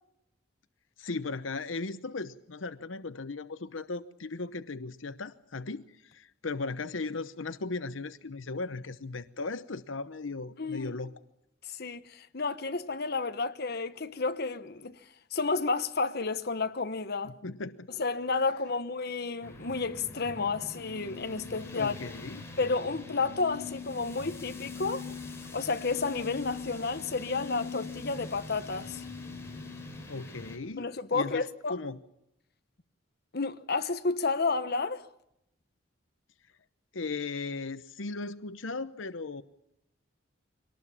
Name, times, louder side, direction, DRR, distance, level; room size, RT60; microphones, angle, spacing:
voice 1, 1.0-11.1 17.2-17.9 21.7-22.5 30.1-30.8 31.1-32.0 36.9-39.4, left 3 dB, 85° left, 0.9 m, -37 dB
voice 2, 10.6-10.9 11.6-15.0 15.3-17.4 17.9-21.9 22.6-25.1 25.5-29.0 30.8-31.7 33.3-35.1, left 4 dB, 55° left, 1.2 m, -31 dB
sound 1, 19.4-30.6, left 4 dB, 15° left, 5.2 m, -42 dB
24.5 x 19.0 x 7.3 m
head